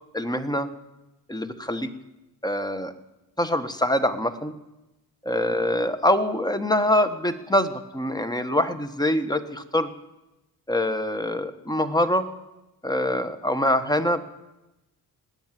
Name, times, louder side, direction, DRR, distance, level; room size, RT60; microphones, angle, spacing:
voice 1, 0.1-0.7 1.3-1.9 2.4-2.9 3.4-4.5 5.3-9.9 10.7-12.3 12.8-14.2, left 1 dB, 10° left, 9 dB, 1.3 m, -24 dB
19.5 x 9.0 x 7.6 m, 0.99 s
cardioid pair, 80°, 39 cm